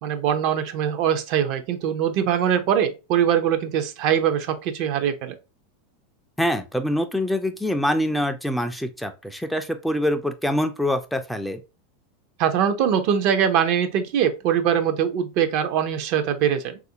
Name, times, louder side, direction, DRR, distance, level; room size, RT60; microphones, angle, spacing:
voice 1, 0.0-5.3 12.4-16.8, right 9 dB, 55° right, 0.5 m, -22 dB
voice 2, 6.4-11.6, left 1 dB, ahead, 0.3 m, -25 dB
3.4 x 2.5 x 2.7 m
hypercardioid pair, 120°, 0 cm